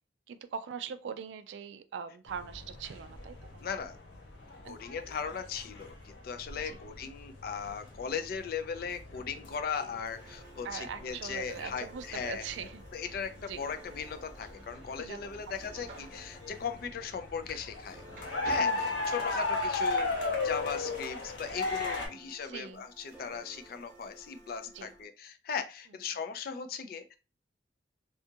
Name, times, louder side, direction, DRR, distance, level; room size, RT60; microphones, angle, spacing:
voice 1, 0.3-3.7 4.6-4.8 6.6-6.8 10.6-12.8 13.5-13.6 15.0-15.2 18.6-18.8 22.1-22.8 24.7-24.9, right 7 dB, 80° right, 11 dB, 0.3 m, -41 dB
sound 1, 2.3-22.1, left 3 dB, 80° left, 0.8 m, -37 dB
voice 2, 3.6-4.0 4.7-12.5 12.9-18.0 18.4-27.1, left 6 dB, 55° left, 9 dB, 0.3 m, -38 dB
sound 2, 10.1-25.0, right 2 dB, 5° right, 0.7 m, -55 dB
sound 3, 10.1-17.8 18.1-19.8, right 2 dB, 45° right, 0.9 m, -53 dB
2.7 x 2.3 x 2.7 m, 0.32 s
head